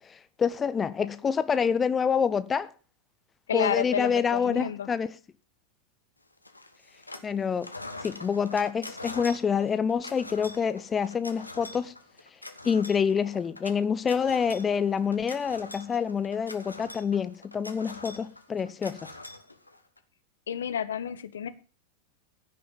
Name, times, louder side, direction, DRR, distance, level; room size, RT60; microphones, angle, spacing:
voice 1, 0.0-2.7 3.5-5.1 7.2-7.7 8.0-11.9 12.6-19.1, left 6 dB, 20° left, 0.8 m, -27 dB
voice 2, 3.5-4.9 20.5-21.5, left 8 dB, 65° left, 1.2 m, -30 dB
sound 1, 6.4-7.3 7.6-20.0, left 2 dB, 85° left, 1.5 m, -44 dB
15.5 x 6.7 x 7.0 m
figure-of-eight pair, 90°, 0 cm